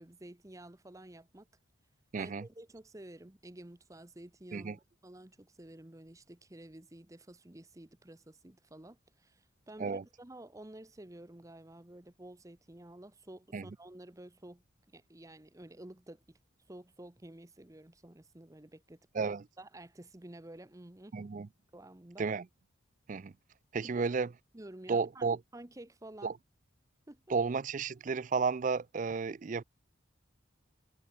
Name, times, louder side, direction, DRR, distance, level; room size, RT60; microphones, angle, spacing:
voice 1, 0.0-1.5 2.2-14.6 14.9-16.4 16.7-21.2 21.7-22.3 23.8-24.1 24.5-26.3 27.1-27.2, right 1 dB, 15° right, 0.8 m, -51 dB
voice 2, 2.1-2.5 4.5-4.8 9.8-10.0 13.5-13.7 19.1-19.4 21.1-21.5 22.2-22.5 23.1-23.3 23.7-24.3 24.9-25.4 26.2-26.3 27.3-29.6, right 5 dB, 40° right, 0.4 m, -32 dB
head